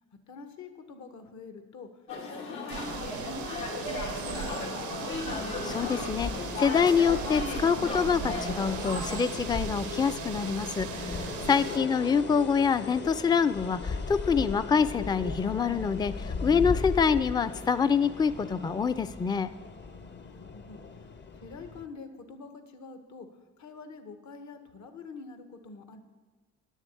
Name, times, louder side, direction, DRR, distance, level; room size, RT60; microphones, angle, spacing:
voice 1, 0.3-1.9 2.2-5.0 19.8-21.1 21.3-23.3 23.6-26.0, left 4 dB, 65° left, 7 dB, 1.4 m, -46 dB
sound 1, 2.1-9.2, left 3 dB, 85° left, 2.6 m, -35 dB
sound 2, 2.7-11.8, right 10 dB, 80° right, 0.6 m, -39 dB
sound 3, 5.3-21.9, left 4 dB, 35° left, 0.7 m, -38 dB
voice 2, 5.6-11.1 11.4-19.5, left 6 dB, 15° left, 13 dB, 0.4 m, -26 dB
10.0 x 7.2 x 8.3 m, 1.5 s
cardioid pair, 90°, 30 cm